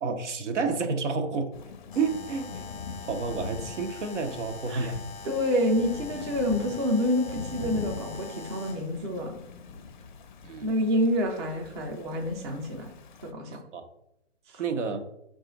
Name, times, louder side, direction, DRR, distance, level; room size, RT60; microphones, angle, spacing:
voice 1, 0.0-1.5 1.9-2.5 3.1-5.0 10.4-10.7 13.5-13.8 14.6-15.0, right 4 dB, 75° right, 6 dB, 0.8 m, -30 dB
Thunder / Rain, 1.5-13.3, left 5 dB, 40° left, 0.4 m, -42 dB
Alarm, 1.9-8.9, left 5 dB, 15° left, 0.8 m, -45 dB
voice 2, 5.2-9.4 10.6-12.9 13.2-13.6 14.5-14.6, left 1 dB, 25° right, 2 dB, 0.5 m, -28 dB
4.8 x 2.4 x 3.8 m, 0.82 s
hypercardioid pair, 135°, 36 cm